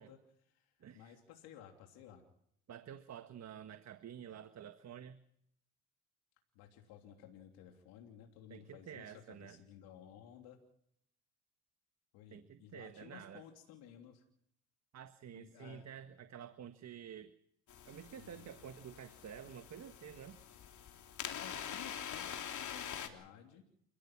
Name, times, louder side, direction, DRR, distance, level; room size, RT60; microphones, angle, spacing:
voice 1, 0.0-2.2 6.5-10.6 12.1-14.2 15.3-16.0 18.1-18.6 21.3-23.7, left 9 dB, 90° left, 3 dB, 3.3 m, -56 dB
voice 2, 0.8-1.2 2.7-5.2 8.5-9.6 12.3-13.4 14.9-17.3 17.9-20.4, right 9 dB, 50° right, 9 dB, 1.6 m, -50 dB
sound 1, 17.7-23.1, left 9 dB, 55° left, 3.5 m, -45 dB
29.5 x 16.0 x 6.1 m, 0.71 s
cardioid pair, 95°, 35 cm